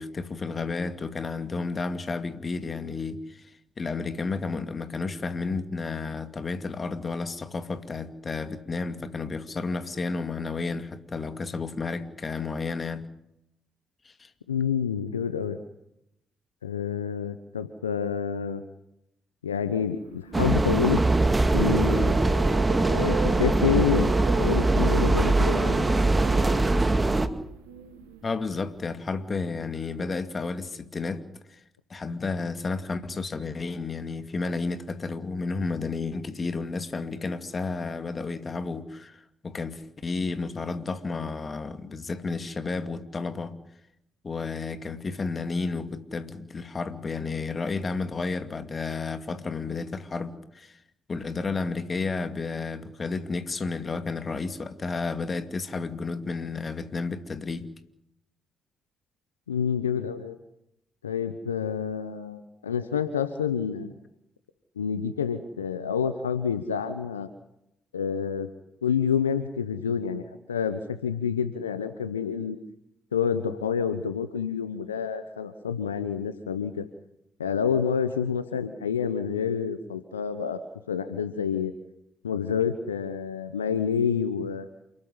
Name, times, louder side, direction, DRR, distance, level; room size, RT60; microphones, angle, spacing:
voice 1, 0.0-3.5 3.8-13.1 14.0-14.3 28.2-31.2 31.5-31.6 31.9-43.6 44.2-50.8 51.1-57.7, left 4 dB, 40° left, 10 dB, 2.4 m, -32 dB
voice 2, 14.5-15.6 16.6-18.6 19.4-21.0 21.5-22.2 22.9-24.1 24.4-25.9 59.5-60.4 61.0-63.9 64.8-67.3 67.9-68.5 68.8-72.6 73.1-76.9 77.4-80.6 80.9-81.7 82.2-84.7, left 7 dB, 90° left, 11 dB, 0.9 m, -28 dB
sound 1, 19.9-30.0, right 8 dB, 80° right, 1.9 m, -39 dB
sound 2, 20.3-27.3, right 2 dB, 25° right, 2.1 m, -22 dB
28.5 x 13.0 x 9.8 m, 0.80 s
figure-of-eight pair, 40°, 0 cm